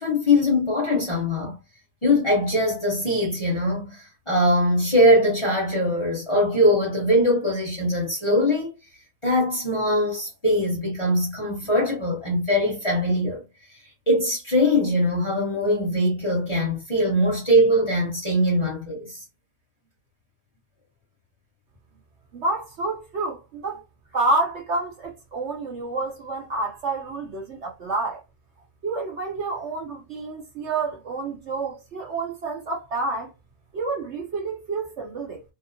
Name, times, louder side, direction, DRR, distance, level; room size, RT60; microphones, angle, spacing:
voice 1, 0.0-1.5 2.0-8.8 9.2-13.4 14.1-19.2, left 1 dB, 25° left, 0.9 m, -22 dB
voice 2, 22.3-23.8 24.1-28.2 28.8-33.3 33.7-35.4, right 3 dB, 60° right, 1.0 m, -28 dB
2.8 x 2.0 x 2.6 m
omnidirectional pair, 1.4 m